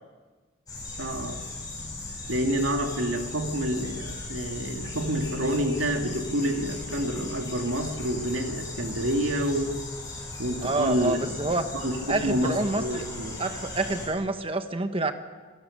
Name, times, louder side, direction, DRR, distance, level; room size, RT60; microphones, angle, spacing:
sound 1, 0.7-14.1, left 2 dB, 20° left, 8.0 m, -37 dB
voice 1, 1.0-1.4 2.3-9.8 10.4-11.4 11.7-13.4, right 1 dB, 90° right, 3 dB, 2.6 m, -28 dB
voice 2, 10.6-11.6 12.1-13.0 13.4-15.1, right 2 dB, 30° right, 8 dB, 1.3 m, -27 dB
28.5 x 17.5 x 6.7 m, 1.4 s
head